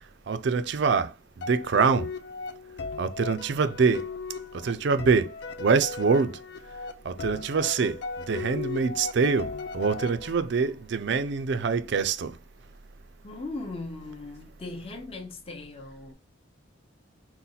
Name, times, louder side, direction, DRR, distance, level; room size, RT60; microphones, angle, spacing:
voice 1, 0.3-2.1 3.0-4.1 4.5-6.4 7.0-8.0 8.3-12.4, right 5 dB, 60° right, 0.4 m, -25 dB
sound 1, 1.4-10.7, left 4 dB, 55° left, 0.5 m, -37 dB
voice 2, 13.2-16.1, left 2 dB, 30° left, 0.8 m, -38 dB
4.1 x 2.2 x 3.9 m
head